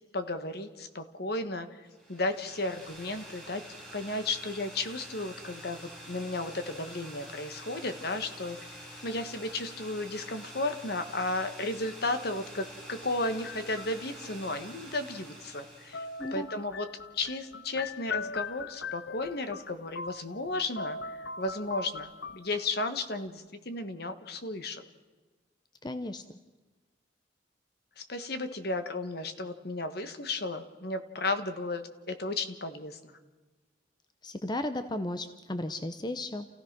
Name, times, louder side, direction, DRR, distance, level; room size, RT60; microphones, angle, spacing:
voice 1, 0.1-3.6 3.9-8.8 9.0-16.9 17.1-24.8 28.0-33.2, left 2 dB, 60° left, 9 dB, 1.5 m, -34 dB
sound 1, 1.9-16.4, right 1 dB, 5° left, 6.1 m, -47 dB
sound 2, 13.3-14.3 15.9-20.5 20.8-22.9, left 4 dB, 75° left, 0.7 m, -40 dB
voice 2, 25.8-26.2 34.2-36.5, left 1 dB, 25° left, 9 dB, 0.8 m, -34 dB
29.0 x 16.0 x 6.1 m, 1.3 s
head